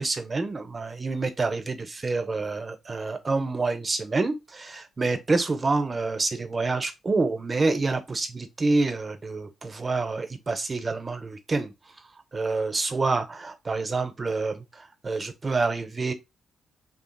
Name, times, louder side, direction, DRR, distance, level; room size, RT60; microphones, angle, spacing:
voice 1, 0.0-11.7 12.3-16.1, right 3 dB, 35° right, 0.5 m, -27 dB
2.6 x 2.4 x 2.2 m
hypercardioid pair, 45°, 0 cm